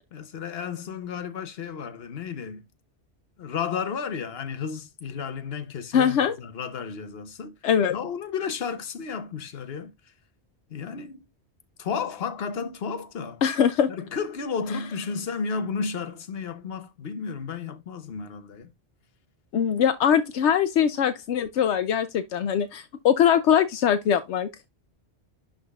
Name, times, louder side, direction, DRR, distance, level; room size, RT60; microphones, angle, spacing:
voice 1, 0.1-2.6 3.4-7.5 7.9-9.9 10.7-11.2 11.8-13.4 13.9-18.7, left 6 dB, 65° left, 1.2 m, -33 dB
voice 2, 5.9-6.4 7.6-8.0 13.4-13.9 19.5-24.5, left 8 dB, 85° left, 0.9 m, -22 dB
11.5 x 3.9 x 2.3 m
omnidirectional pair, 1.1 m